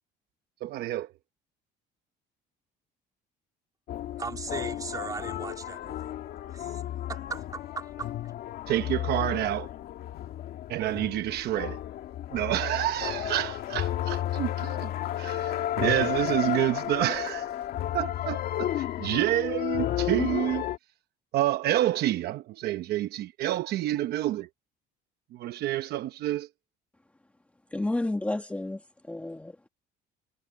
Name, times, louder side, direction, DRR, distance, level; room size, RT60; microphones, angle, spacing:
voice 1, 0.6-1.1 8.7-9.7 10.7-11.8 12.3-14.9 15.2-17.5 17.9-20.7 21.3-24.5 25.3-26.5, right 14 dB, 60° right, 0.9 m, -28 dB
sound 1, 3.9-20.8, left 12 dB, 55° left, 2.0 m, -33 dB
voice 2, 4.2-6.1 6.5-6.8 7.1-8.1, right 4 dB, 20° right, 3.6 m, -38 dB
voice 3, 27.7-29.7, left 2 dB, 5° left, 1.5 m, -31 dB
cardioid pair, 160°, 18 cm